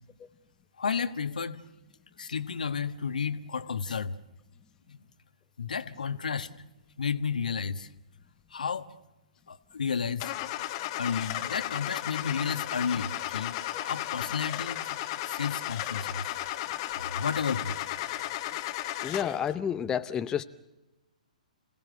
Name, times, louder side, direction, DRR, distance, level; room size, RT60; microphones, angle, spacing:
voice 1, 0.8-1.6 2.2-4.2 4.9-5.0 5.6-6.6 7.0-7.9 8.5-8.9 9.5-10.3 10.9-15.0 15.2-16.2 17.0-17.8, left 6 dB, 75° left, 12 dB, 1.4 m, -32 dB
Car / Engine starting, 10.2-19.5, left 14 dB, 40° left, 1.4 m, -34 dB
voice 2, 19.0-20.4, left 8 dB, 15° left, 10 dB, 0.7 m, -30 dB
27.5 x 17.5 x 7.8 m, 1.0 s
hypercardioid pair, 130°, 4 cm